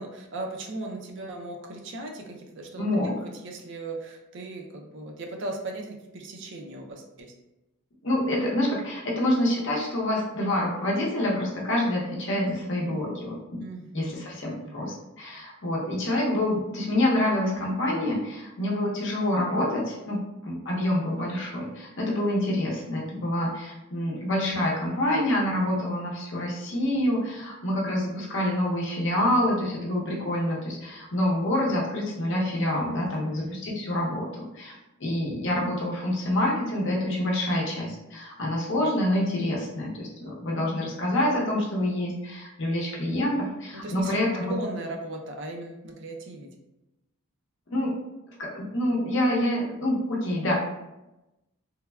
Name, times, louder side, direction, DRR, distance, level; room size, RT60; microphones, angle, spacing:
voice 1, 0.0-7.3 13.6-14.2 14.6-14.9 33.0-33.6 43.7-44.2 44.4-46.5, right 2 dB, 55° right, 1 dB, 0.4 m, -37 dB
voice 2, 2.8-3.1 8.0-13.4 13.9-34.7 35.0-44.5 47.7-47.9 48.4-50.5, left 1 dB, 60° left, -3 dB, 0.7 m, -27 dB
3.3 x 2.2 x 2.2 m, 0.95 s
head